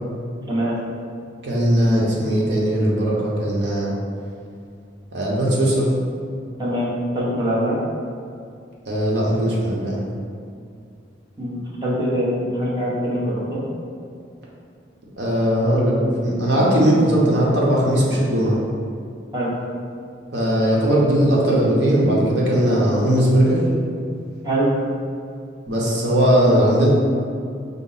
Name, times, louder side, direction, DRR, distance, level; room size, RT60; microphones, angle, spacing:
voice 1, 0.5-0.8 6.6-7.8 11.4-13.7 19.3-19.5 24.4-24.7, equal, 20° right, -7 dB, 0.9 m, -23 dB
voice 2, 1.4-3.9 5.1-5.9 8.9-10.0 15.2-18.6 20.3-23.6 25.7-26.9, equal, 70° right, -5 dB, 0.9 m, -18 dB
5.1 x 2.0 x 3.9 m, 2.4 s
head